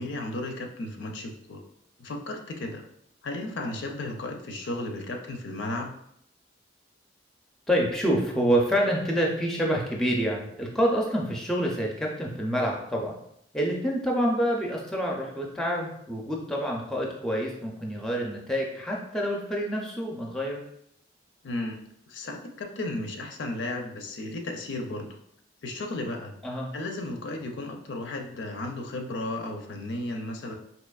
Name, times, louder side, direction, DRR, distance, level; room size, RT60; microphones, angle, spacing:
voice 1, 0.0-1.6 2.0-2.8 3.2-5.9 21.4-21.8 22.1-25.1 25.6-26.3 26.7-30.5, left 2 dB, 80° left, 3 dB, 0.5 m, -34 dB
voice 2, 7.7-13.2 13.5-20.6 26.4-26.7, equal, 5° left, -1 dB, 0.4 m, -27 dB
4.1 x 2.8 x 2.3 m, 0.74 s
head